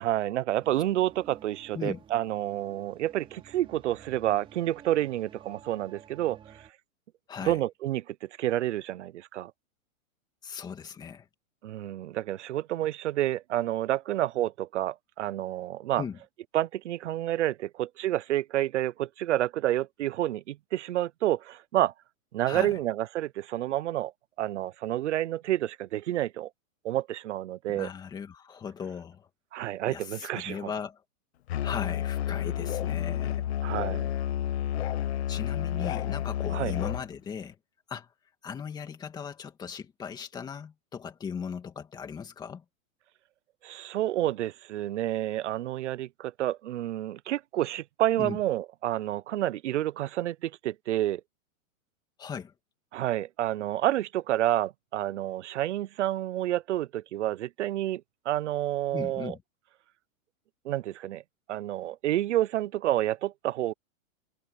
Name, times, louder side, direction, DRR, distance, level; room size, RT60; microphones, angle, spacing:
voice 1, 0.0-6.7 7.4-9.5 11.6-16.0 16.5-21.9 22.3-24.1 24.4-26.5 26.8-27.9 29.5-30.7 33.6-34.1 36.5-36.7 43.6-51.2 52.9-59.3 60.6-61.2 61.5-63.7, right 13 dB, 60° right, 0.5 m, -29 dB
sound 1, 0.6-6.7, right 8 dB, 10° right, 4.9 m, -53 dB
voice 2, 7.3-7.6 10.4-11.3 16.0-16.2 22.5-22.8 27.7-29.3 29.9-31.0 31.6-33.5 35.3-37.6 37.9-38.1 38.4-42.6 48.2-48.4 52.2-52.5 58.9-59.4, left 7 dB, 10° left, 2.3 m, -38 dB
Musical instrument, 31.5-37.1, left 11 dB, 50° left, 1.2 m, -30 dB
hypercardioid pair, 175°, 42 cm